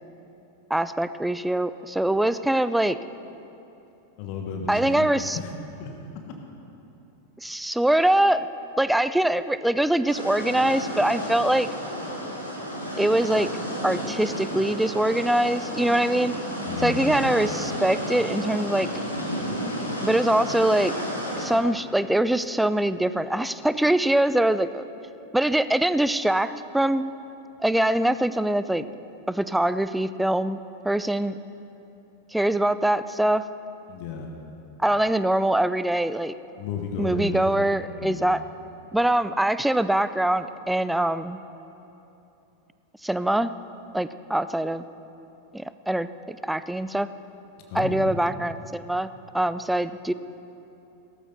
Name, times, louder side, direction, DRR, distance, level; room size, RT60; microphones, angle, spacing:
voice 1, 0.7-3.0 4.7-5.4 7.4-8.5 8.8-11.7 13.0-13.5 13.8-16.3 16.8-18.9 20.0-20.9 21.4-24.8 25.3-27.1 27.6-28.8 29.3-30.6 30.8-31.4 32.3-33.4 34.8-36.4 37.0-38.4 38.9-41.4 43.0-43.5 43.9-44.8 45.5-47.1 47.7-50.1, right 1 dB, 5° right, 14 dB, 0.4 m, -23 dB
voice 2, 4.2-5.1 5.3-6.0 6.3-6.4 16.6-17.3 33.9-34.3 36.6-37.7 37.9-38.2 47.7-48.2, left 4 dB, 45° left, 2 dB, 1.4 m, -33 dB
sound 1, 10.1-21.5, equal, 90° left, 2.8 m, -32 dB
17.0 x 14.0 x 4.1 m, 2.9 s
figure-of-eight pair, 90°, 0 cm